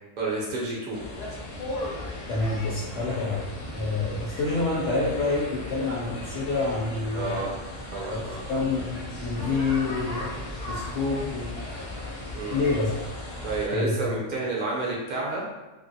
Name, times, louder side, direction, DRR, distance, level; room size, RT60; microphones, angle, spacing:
voice 1, 0.2-1.0 7.1-7.5 7.9-8.4 9.8-10.0 12.3-12.6 13.4-15.4, right 3 dB, 45° right, -4 dB, 0.6 m, -30 dB
sound 1, 0.9-13.7, left 1 dB, 85° left, 0.3 m, -36 dB
voice 2, 2.3-3.4 3.7-7.4 8.1-10.3 10.7-11.5 12.5-12.9 13.7-14.2, left 3 dB, 65° left, -7 dB, 0.9 m, -27 dB
2.9 x 2.5 x 2.7 m, 1.1 s
omnidirectional pair, 1.5 m